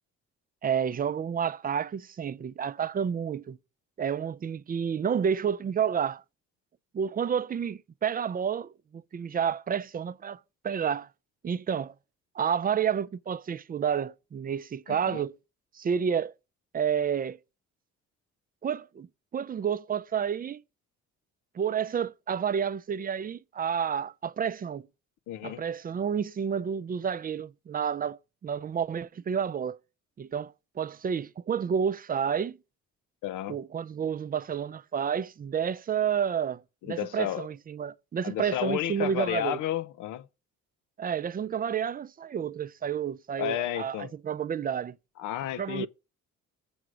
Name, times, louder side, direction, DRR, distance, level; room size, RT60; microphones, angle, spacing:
voice 1, 0.6-3.6 4.0-6.2 6.9-11.1 11.4-11.9 12.4-15.4 15.7-16.3 16.7-17.4 18.6-19.1 19.3-20.6 21.5-24.9 25.4-29.8 30.2-32.6 33.5-36.6 36.9-39.6 41.0-45.0 45.6-45.9, right 7 dB, 30° right, 0.4 m, -30 dB
voice 2, 14.9-15.2 25.3-25.6 33.2-33.6 36.8-37.5 38.2-40.3 43.4-44.1 45.2-45.9, left 12 dB, 90° left, 0.6 m, -32 dB
7.9 x 4.8 x 6.2 m
cardioid pair, 90°, 30 cm